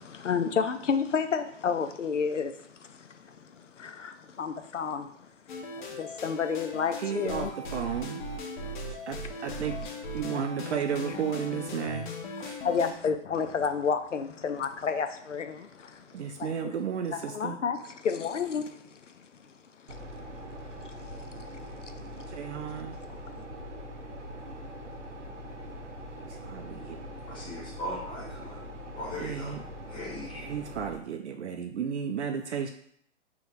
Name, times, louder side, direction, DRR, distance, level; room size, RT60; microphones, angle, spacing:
voice 1, 0.0-5.3 5.8-7.5 8.6-8.9 12.6-16.7 17.1-19.3 19.9-20.0 20.8-21.5 21.8-21.9 23.1-23.4, left 6 dB, 90° left, 0.6 m, -31 dB
sound 1, 5.5-12.9, left 1 dB, 40° left, 0.8 m, -38 dB
voice 2, 7.0-8.2 9.1-9.8 10.1-12.1 12.4-12.6 16.1-17.6 22.3-23.0 26.3-27.0 29.2-29.6 30.4-32.7, right 7 dB, 70° right, 0.5 m, -33 dB
sound 2, 19.9-31.0, equal, 90° right, 0.9 m, -42 dB
voice 3, 27.3-28.6 28.9-29.6 29.9-30.6, left 1 dB, 15° left, 1.2 m, -39 dB
5.7 x 3.0 x 2.6 m
figure-of-eight pair, 125°, 36 cm